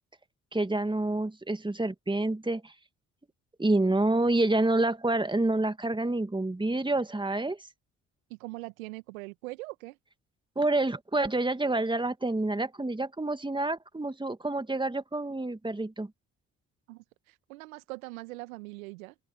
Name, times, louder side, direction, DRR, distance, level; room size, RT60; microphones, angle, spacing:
voice 1, 0.5-2.7 3.6-7.6 10.6-16.1, right 2 dB, 10° right, 2.2 m, -28 dB
voice 2, 8.3-10.0 16.9-19.2, right 23 dB, 80° right, 1.6 m, -42 dB
open air
hypercardioid pair, 45°, 40 cm